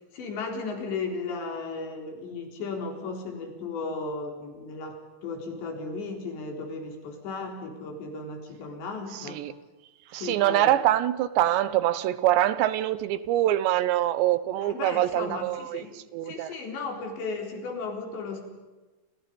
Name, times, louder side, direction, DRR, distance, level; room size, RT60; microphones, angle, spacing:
voice 1, 0.1-9.4 10.1-10.7 14.6-16.0 16.2-18.4, left 4 dB, 80° left, 6.5 m, -35 dB
voice 2, 10.1-15.8 16.1-16.5, right 13 dB, 80° right, 3.3 m, -24 dB
30.0 x 28.5 x 5.4 m
omnidirectional pair, 5.0 m